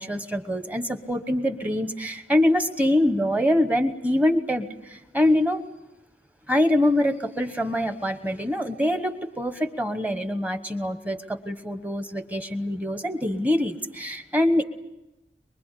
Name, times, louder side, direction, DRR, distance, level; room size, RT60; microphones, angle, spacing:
voice 1, 0.0-5.6 6.5-14.6, left 1 dB, 10° right, 9 dB, 1.1 m, -24 dB
23.5 x 23.0 x 8.4 m, 0.97 s
head